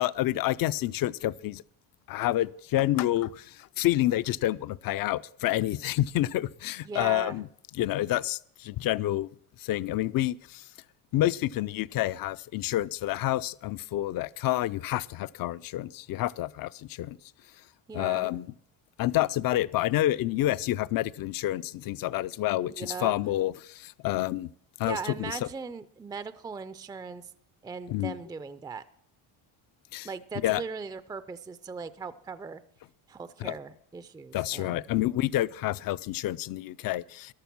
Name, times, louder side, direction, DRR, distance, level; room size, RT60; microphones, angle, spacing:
voice 1, 0.0-1.6 2.1-7.5 7.7-9.3 9.6-10.7 11.1-17.2 17.9-18.5 19.0-24.5 24.8-25.5 27.9-28.2 29.9-30.1 30.4-30.6 33.4-33.6 34.3-37.3, left 15 dB, 50° left, 18 dB, 0.5 m, -28 dB
voice 2, 6.8-7.4 17.9-18.4 22.6-23.1 24.9-27.3 27.6-28.8 30.0-32.6 33.1-34.8, right 5 dB, 10° right, 14 dB, 0.4 m, -39 dB
14.5 x 11.0 x 6.0 m, 0.65 s
cardioid pair, 115°, 44 cm